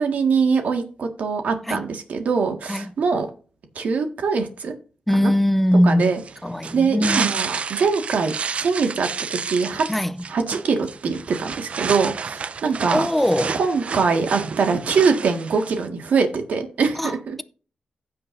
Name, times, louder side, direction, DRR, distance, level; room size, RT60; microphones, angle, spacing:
voice 1, 0.0-3.3 3.8-4.8 5.2-5.3 5.8-6.2 6.7-9.9 10.3-13.1 13.6-17.4, right 5 dB, 75° right, 1.8 m, -23 dB
voice 2, 5.1-6.1 6.4-7.3 9.9-10.2 12.9-13.6 17.0-17.4, equal, 5° left, 0.7 m, -21 dB
sound 1, 6.0-15.9, right 5 dB, 50° right, 0.5 m, -30 dB
15.5 x 6.0 x 2.7 m
wide cardioid pair, 110°, 3 cm